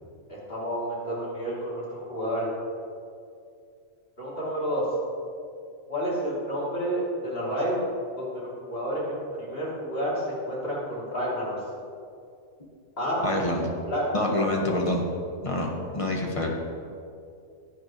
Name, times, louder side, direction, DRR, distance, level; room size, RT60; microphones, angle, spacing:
voice 1, 0.3-2.5 4.2-4.9 5.9-7.8 8.2-11.6 13.0-13.2 13.9-14.0, equal, 45° left, -7 dB, 3.2 m, -30 dB
voice 2, 13.2-13.7 14.1-15.0 15.4-16.5, left 1 dB, 25° left, -1 dB, 1.4 m, -26 dB
14.5 x 9.5 x 3.1 m, 2.4 s
omnidirectional pair, 1.4 m